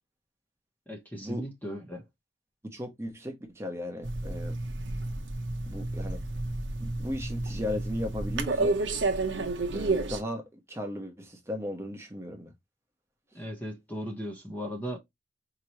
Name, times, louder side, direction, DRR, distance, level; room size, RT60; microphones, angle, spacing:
voice 1, 0.9-2.0 13.3-15.0, equal, 10° left, 0.9 m, -37 dB
voice 2, 2.6-4.6 5.6-6.2 6.8-8.8 9.7-12.5, left 1 dB, 15° right, 1.0 m, -36 dB
sound 1, 4.0-10.2, right 2 dB, 80° right, 0.8 m, -31 dB
4.6 x 2.9 x 2.9 m
head